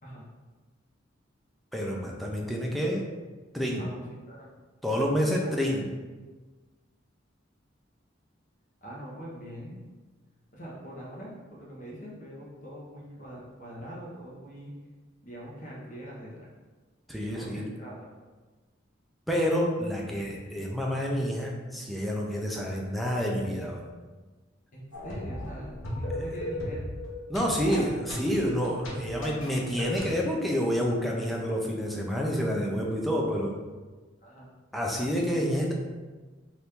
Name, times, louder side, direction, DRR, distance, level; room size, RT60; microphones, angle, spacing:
voice 1, 1.7-3.0 3.5-3.9 4.8-5.9 17.1-17.7 19.3-23.8 26.1-26.2 27.3-33.6 34.7-35.7, equal, ahead, -2 dB, 0.4 m, -28 dB
voice 2, 3.8-4.5 5.4-5.5 8.8-9.8 10.5-14.7 15.2-16.5 17.3-18.1 24.7-26.8 27.4-27.8 34.2-34.5, equal, 40° left, -4 dB, 0.9 m, -43 dB
sound 1, 24.9-30.1, left 1 dB, 85° left, 0.8 m, -36 dB
2.9 x 2.6 x 3.4 m, 1.3 s
head